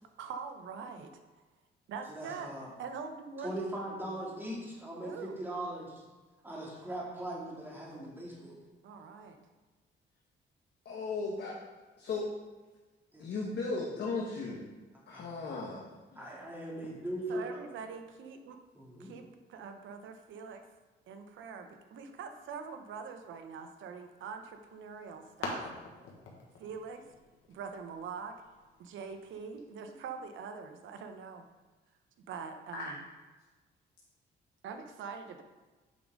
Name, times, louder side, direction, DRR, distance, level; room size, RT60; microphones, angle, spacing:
voice 1, 0.2-1.4 1.9-3.5 5.0-5.4 8.8-9.5 17.3-18.6 19.0-20.6 21.1-25.6 26.6-27.0 27.5-31.5 32.3-33.0 34.6-35.4, right 5 dB, 80° right, 7 dB, 0.9 m, -44 dB
voice 2, 2.1-2.7 3.4-6.0 6.4-8.6 13.1-13.3 15.1-15.3 16.2-17.6 18.7-19.1, right 1 dB, 10° right, -4 dB, 2.5 m, -40 dB
voice 3, 10.8-11.6 12.0-12.3 13.2-14.7 15.1-16.2 32.7-32.9, left 3 dB, 60° left, -2 dB, 1.2 m, -36 dB
sound 1, 24.5-29.6, left 3 dB, 85° left, 1.4 m, -46 dB
8.5 x 5.2 x 3.7 m, 1.3 s
cardioid pair, 90°, 20 cm